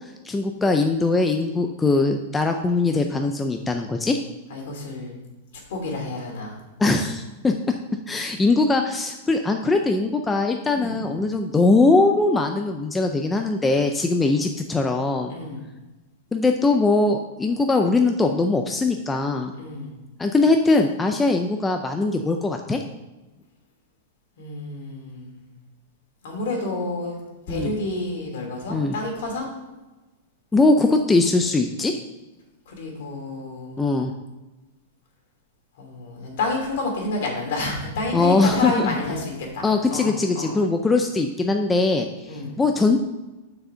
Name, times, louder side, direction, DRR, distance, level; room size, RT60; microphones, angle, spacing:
voice 1, 0.2-4.2 6.8-7.5 8.1-15.3 16.3-19.5 20.2-22.8 27.5-27.7 28.7-28.9 30.5-31.9 33.8-34.1 38.1-38.9 39.6-43.0, left 3 dB, 10° left, 4 dB, 0.4 m, -21 dB
voice 2, 4.5-5.2 5.7-6.6 10.8-11.0 14.2-14.4 15.3-15.6 19.6-19.9 24.4-25.5 26.2-27.2 27.5-29.5 32.7-33.8 35.8-39.6 39.9-40.6 42.3-42.6, left 2 dB, 60° left, 0 dB, 2.8 m, -29 dB
6.3 x 4.9 x 6.7 m, 1.1 s
supercardioid pair, 170°, 0 cm